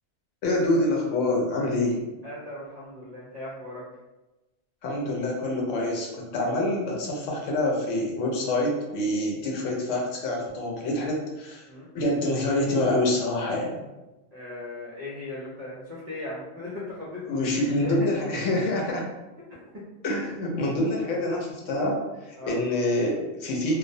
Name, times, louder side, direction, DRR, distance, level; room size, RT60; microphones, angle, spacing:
voice 1, 0.4-2.0 4.8-11.7 11.9-13.8 17.3-19.1 20.0-23.8, left 1 dB, 80° left, -1 dB, 1.0 m, -26 dB
voice 2, 2.2-3.8 11.7-11.9 14.3-17.9 19.7-19.8 22.4-22.5, left 2 dB, 45° right, -7 dB, 0.6 m, -38 dB
2.4 x 2.0 x 2.6 m, 1.1 s
omnidirectional pair, 1.3 m